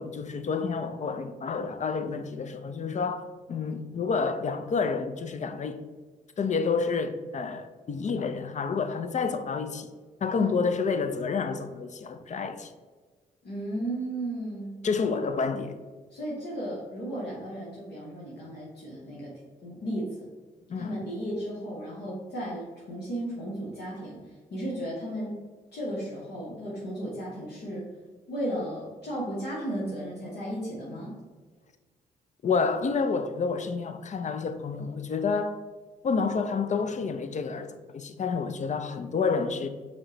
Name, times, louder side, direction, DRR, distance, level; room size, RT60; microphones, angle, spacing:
voice 1, 0.0-5.8 6.4-9.9 10.2-12.7 14.8-15.7 20.7-21.0 32.4-35.6 36.0-39.7, left 5 dB, 40° left, 0.5 m, -29 dB
voice 2, 13.4-14.8 16.1-19.3 19.6-20.3 20.7-24.2 24.5-25.4 25.7-27.9 28.3-31.2, right 1 dB, 65° left, 1.0 m, -34 dB
5.0 x 2.2 x 3.9 m
hypercardioid pair, 45°, 18 cm